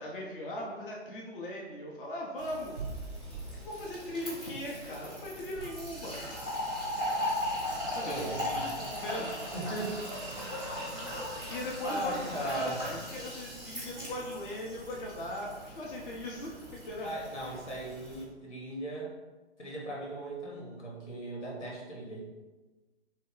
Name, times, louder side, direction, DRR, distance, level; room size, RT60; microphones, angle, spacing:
voice 1, 0.0-2.8 3.5-6.3 7.9-9.4 11.5-17.1, left 1 dB, 50° left, -3 dB, 0.6 m, -39 dB
Fill (with liquid), 2.4-18.2, equal, 10° left, 0.3 m, -38 dB
voice 2, 8.0-8.9 9.5-10.0 10.6-11.0 11.5-13.0 17.0-19.1 19.6-22.2, right 1 dB, 85° left, -3 dB, 1.3 m, -38 dB
3.2 x 2.1 x 3.6 m, 1.2 s
figure-of-eight pair, 135°, 35 cm